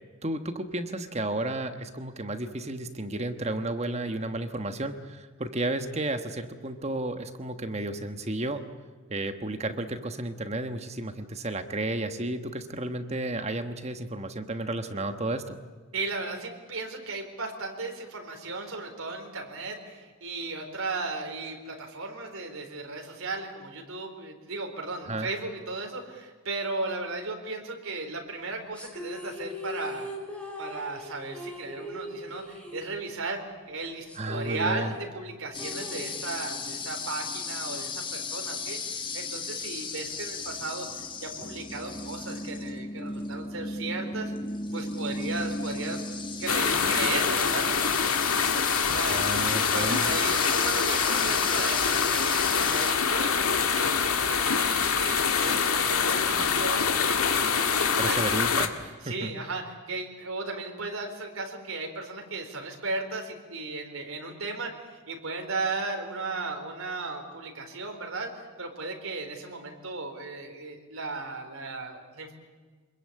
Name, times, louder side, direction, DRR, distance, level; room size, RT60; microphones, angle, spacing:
voice 1, 0.2-8.6 9.1-15.6 25.1-25.3 34.2-34.9 49.1-50.1 58.0-59.3, right 2 dB, 30° right, 8 dB, 1.3 m, -32 dB
voice 2, 15.9-30.1 30.6-44.3 44.7-46.0 46.4-49.2 49.7-53.9 54.3-57.6 57.9-58.2 59.0-72.3, right 3 dB, 75° right, 3 dB, 4.2 m, -36 dB
sound 1, 28.7-33.4 33.7-33.8 34.1-36.7, left 1 dB, 5° left, 3.2 m, -40 dB
sound 2, 35.5-52.9, left 3 dB, 20° left, 1.6 m, -35 dB
sound 3, 46.5-58.7, left 6 dB, 85° left, 1.9 m, -25 dB
25.5 x 21.5 x 8.6 m, 1.5 s
head